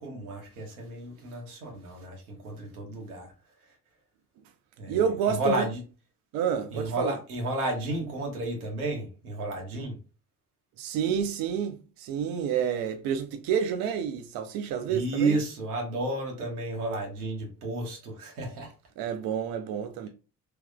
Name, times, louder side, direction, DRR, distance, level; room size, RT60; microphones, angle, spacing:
voice 1, 0.0-3.3 4.8-5.8 6.7-10.0 14.9-18.7, right 2 dB, 85° right, 0.9 m, -32 dB
voice 2, 4.9-5.6 6.3-7.1 10.8-15.4 19.0-20.1, right 8 dB, 55° right, 0.5 m, -29 dB
3.3 x 3.0 x 2.3 m
figure-of-eight pair, 45°, 43 cm